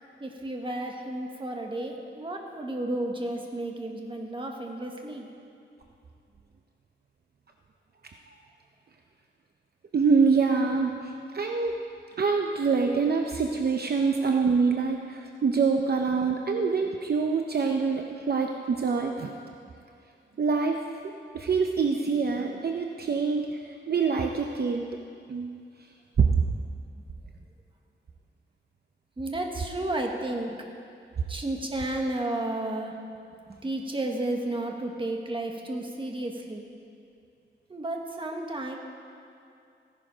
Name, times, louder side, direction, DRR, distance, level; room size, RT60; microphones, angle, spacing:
voice 1, 0.2-5.3 22.1-22.2 29.2-30.6 31.3-33.0 33.5-36.7 37.7-38.8, right 1 dB, 25° right, 2 dB, 1.3 m, -32 dB
voice 2, 9.9-11.8 12.2-19.3 20.4-20.8 21.3-24.9 25.3-25.5 26.2-26.3, right 5 dB, 55° right, 3 dB, 0.7 m, -25 dB
15.0 x 11.0 x 5.1 m, 2.5 s
wide cardioid pair, 155°, 20 cm